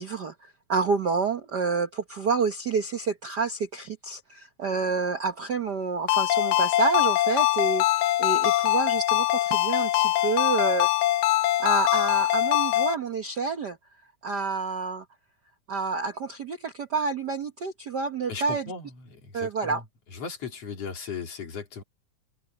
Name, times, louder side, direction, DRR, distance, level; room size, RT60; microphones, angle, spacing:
voice 1, 0.0-10.9 11.6-13.8 14.2-15.0 15.7-18.7 19.3-19.8, right 5 dB, 85° right, 0.9 m, -29 dB
Ringtone, 6.1-13.0, left 16 dB, 80° left, 1.9 m, -23 dB
voice 2, 18.3-19.8 20.1-21.8, left 5 dB, 50° left, 4.0 m, -37 dB
omnidirectional pair, 3.6 m